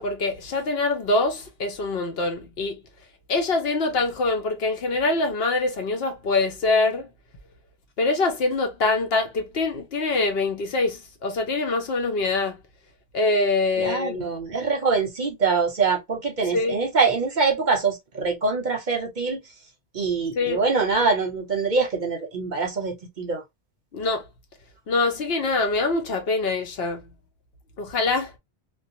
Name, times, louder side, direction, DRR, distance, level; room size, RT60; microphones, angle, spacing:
voice 1, 0.0-2.8 3.3-7.1 8.0-12.6 13.1-14.3 16.5-16.8 20.4-20.6 23.9-24.3 24.9-27.1 27.8-28.4, left 3 dB, 65° left, 0.9 m, -24 dB
voice 2, 13.8-19.4 19.9-23.4, right 4 dB, 50° right, 0.7 m, -24 dB
2.7 x 2.0 x 2.6 m
omnidirectional pair, 1.2 m